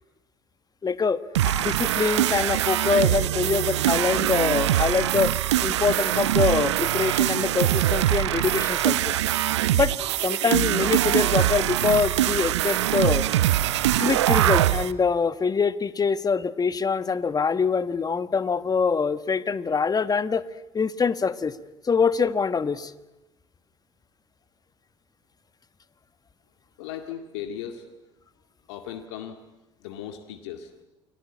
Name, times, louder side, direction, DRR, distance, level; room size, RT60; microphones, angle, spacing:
voice 1, 0.8-5.3 5.6-9.1 9.7-9.9 10.2-13.2 14.0-20.4 20.7-21.6 21.8-22.9, left 5 dB, 25° left, 13 dB, 1.4 m, -24 dB
sound 1, 1.3-14.9, right 14 dB, 80° right, 0.9 m, -23 dB
voice 2, 26.8-27.9 28.7-29.4 29.8-30.7, left 9 dB, 70° left, 5 dB, 2.1 m, -37 dB
29.0 x 21.5 x 8.7 m, 1.0 s
hypercardioid pair, 65°, 15 cm